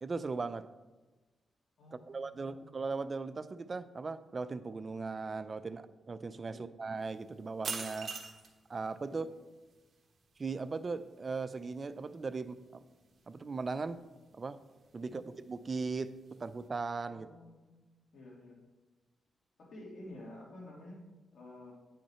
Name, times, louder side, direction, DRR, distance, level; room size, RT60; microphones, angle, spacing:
voice 1, 0.0-0.7 1.9-8.1 8.7-9.3 10.4-12.8 13.3-14.0 14.3-14.6 14.9-16.1 16.4-17.3, right 4 dB, 40° right, 12 dB, 0.4 m, -38 dB
voice 2, 1.8-2.7 6.5-6.7 9.0-9.2 15.0-15.2 17.1-17.7 18.1-18.6 19.6-21.7, left 1 dB, 75° left, -3 dB, 2.6 m, -51 dB
sound 1, 7.0-16.7, right 5 dB, 55° right, 1.2 m, -48 dB
9.3 x 5.8 x 4.3 m, 1.2 s
cardioid pair, 95°, 0 cm